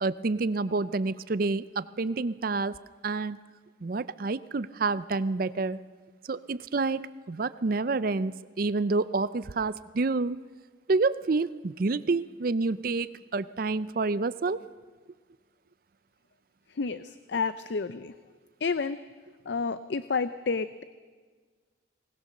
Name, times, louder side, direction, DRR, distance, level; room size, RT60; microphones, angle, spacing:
voice 1, 0.0-2.7 3.0-3.4 3.8-5.8 6.3-8.3 8.6-10.4 10.9-14.6, right 3 dB, 50° right, 16 dB, 0.5 m, -28 dB
voice 2, 16.8-18.1 18.6-19.0 19.5-20.8, left 4 dB, 60° left, 13 dB, 0.5 m, -30 dB
20.5 x 19.5 x 6.6 m, 1.5 s
head